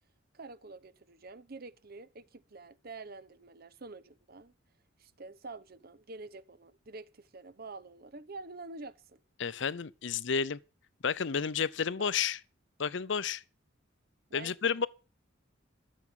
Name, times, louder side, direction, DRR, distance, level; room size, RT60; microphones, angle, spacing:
voice 1, 0.3-4.5 5.0-9.2 12.0-12.1 14.3-14.9, right 3 dB, 50° right, 0.9 m, -47 dB
voice 2, 9.4-10.6 11.0-12.4 12.8-13.4 14.3-14.9, left 6 dB, 65° left, 0.6 m, -31 dB
13.0 x 7.3 x 7.6 m
head